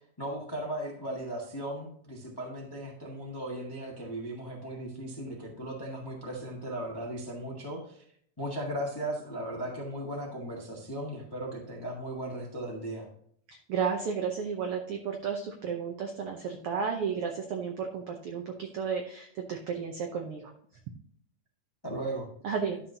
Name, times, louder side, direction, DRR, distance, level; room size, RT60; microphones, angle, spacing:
voice 1, 0.2-8.0 8.4-13.1 21.8-22.3, right 1 dB, 20° left, -2 dB, 0.6 m, -37 dB
voice 2, 13.5-20.5 22.4-22.8, right 6 dB, 80° right, 3 dB, 1.2 m, -33 dB
11.5 x 6.1 x 2.7 m, 0.63 s
omnidirectional pair, 3.6 m